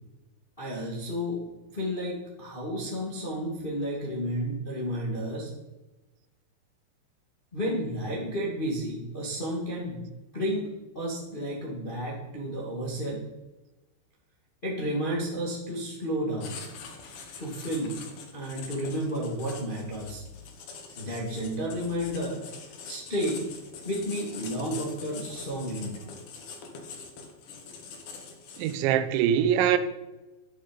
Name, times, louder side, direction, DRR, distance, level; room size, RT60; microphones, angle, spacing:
voice 1, 0.6-1.4 1.7-5.5 7.5-10.0 10.3-10.7 10.9-13.2 14.6-16.6 17.4-18.0 18.3-20.2 21.0-22.4 22.9-23.4 23.8-26.0, equal, 30° left, 1.0 m, -31 dB
Writing, 16.4-29.0, left 5 dB, 60° left, 2.4 m, -44 dB
voice 2, 28.6-29.8, right 10 dB, 90° right, 3.1 m, -23 dB
11.0 x 8.4 x 5.4 m
omnidirectional pair, 5.2 m